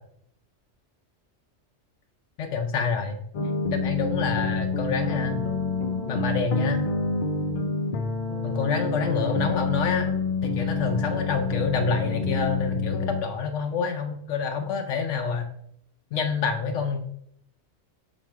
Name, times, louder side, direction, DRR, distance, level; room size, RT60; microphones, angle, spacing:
voice 1, 2.4-3.2 3.7-5.4 6.1-6.8 8.4-10.1 10.4-15.5 16.1-17.0, left 5 dB, 75° left, 4 dB, 1.0 m, -27 dB
sound 1, 3.3-13.2, left 3 dB, 50° left, 0.7 m, -28 dB
6.0 x 4.3 x 4.6 m, 0.71 s
omnidirectional pair, 1.3 m